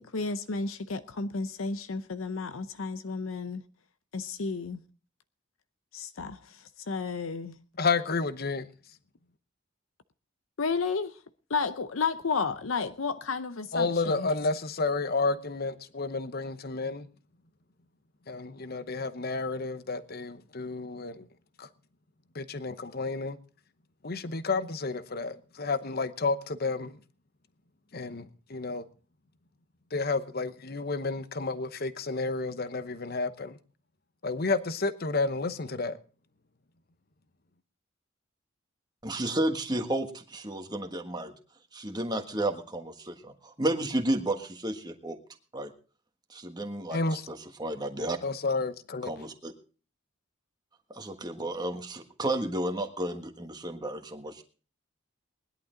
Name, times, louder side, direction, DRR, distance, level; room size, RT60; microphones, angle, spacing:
voice 1, 0.0-3.6 4.1-4.8 5.9-7.6 10.6-11.2 11.5-14.3, left 4 dB, 75° left, 0.7 m, -32 dB
voice 2, 7.8-8.7 13.7-17.1 18.3-21.3 21.6-21.7 22.3-23.4 24.0-27.0 27.9-28.9 29.9-33.6 34.2-36.0 46.9-47.2 48.2-49.1, left 3 dB, 45° left, 0.9 m, -31 dB
voice 3, 39.0-41.3 41.7-45.2 45.5-45.7 46.3-47.0 47.3-48.2 49.0-49.5 50.9-54.4, right 1 dB, 20° right, 1.4 m, -32 dB
20.0 x 11.5 x 3.8 m
head